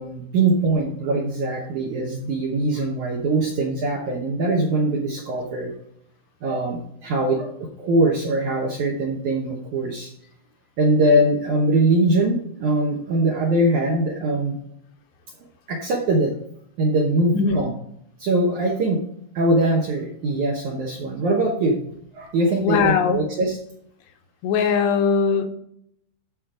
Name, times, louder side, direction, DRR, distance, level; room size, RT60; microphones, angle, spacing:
voice 1, 0.0-5.7 6.4-10.1 10.8-14.6 15.7-16.3 16.8-17.7 18.2-19.0 19.3-21.8 22.1-23.6, right 2 dB, 70° right, 0 dB, 1.9 m, -22 dB
voice 2, 22.6-23.2 24.4-25.5, left 6 dB, 80° left, 5 dB, 3.1 m, -20 dB
13.5 x 5.2 x 3.8 m, 0.71 s
omnidirectional pair, 5.0 m